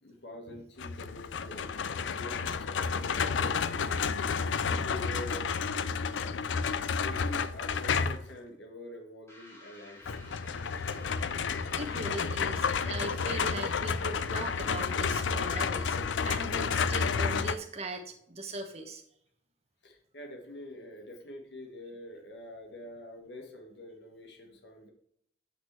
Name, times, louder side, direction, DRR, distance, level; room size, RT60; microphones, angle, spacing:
voice 1, 0.0-5.6 7.0-10.4 19.8-24.9, left 1 dB, 65° left, 3 dB, 1.5 m, -46 dB
sound 1, 0.8-8.3 10.1-17.6, left 5 dB, 90° left, 0.5 m, -31 dB
sound 2, 9.3-15.1, left 2 dB, 15° left, 2.2 m, -53 dB
voice 2, 11.8-19.0, right 2 dB, 35° right, 4 dB, 1.2 m, -39 dB
8.3 x 6.2 x 3.1 m, 0.70 s
head